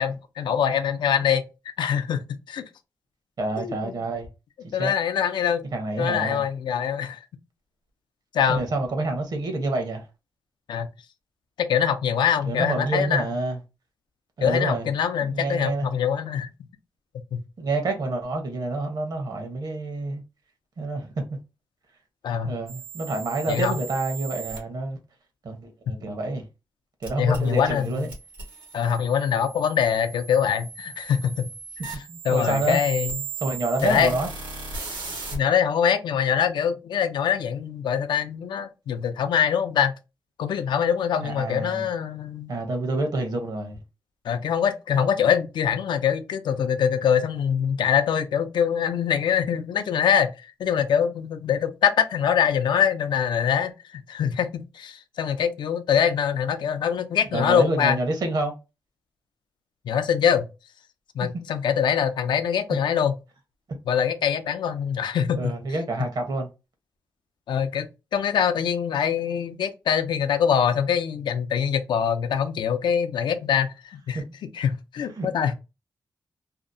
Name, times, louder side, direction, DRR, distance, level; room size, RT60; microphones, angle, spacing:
voice 1, 0.0-1.4 1.8-2.2 2.5-2.6 3.6-4.0 4.7-5.7 6.0-7.2 8.3-8.6 10.7-10.9 11.6-13.3 14.4-16.5 17.3-17.4 22.2-22.5 23.5-23.8 27.2-28.1 28.7-31.5 31.8-31.9 32.2-33.2 33.8-34.1 35.3-39.9 40.4-42.6 44.2-50.3 50.6-58.0 59.8-60.5 61.1-63.1 63.9-65.4 67.5-67.9 68.1-74.2 74.5-75.5, left 8 dB, 85° left, 0.4 m, -24 dB
voice 2, 3.4-4.3 4.6-4.9 5.7-6.4 8.5-10.0 12.5-13.6 14.4-14.9 15.3-15.9 17.6-20.2 20.8-21.4 22.4-25.0 25.4-26.4 27.0-28.1 31.8-32.8 33.4-34.3 41.2-41.9 42.5-43.8 57.3-58.5 61.2-61.4 65.4-66.5 74.1-74.2 75.2-75.3, right 2 dB, 60° right, 0.9 m, -28 dB
sound 1, 22.7-24.6 27.0-35.4, right 5 dB, 85° right, 1.1 m, -37 dB
2.7 x 2.0 x 2.5 m
wide cardioid pair, 110°, 8 cm